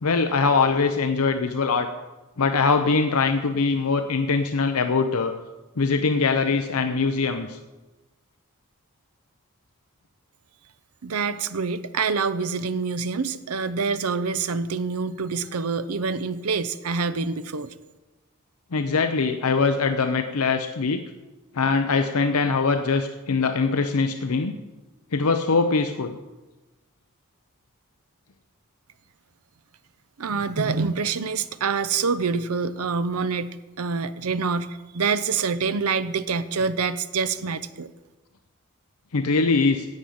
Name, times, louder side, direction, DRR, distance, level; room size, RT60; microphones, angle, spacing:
voice 1, 0.0-1.9 2.4-5.3 5.8-7.6 18.7-21.0 21.5-24.6 25.1-26.2 39.1-39.9, left 4 dB, 80° left, 7 dB, 0.7 m, -22 dB
voice 2, 11.0-17.7 30.2-37.9, right 5 dB, 80° right, 12 dB, 0.7 m, -26 dB
10.5 x 7.8 x 8.6 m, 1.1 s
head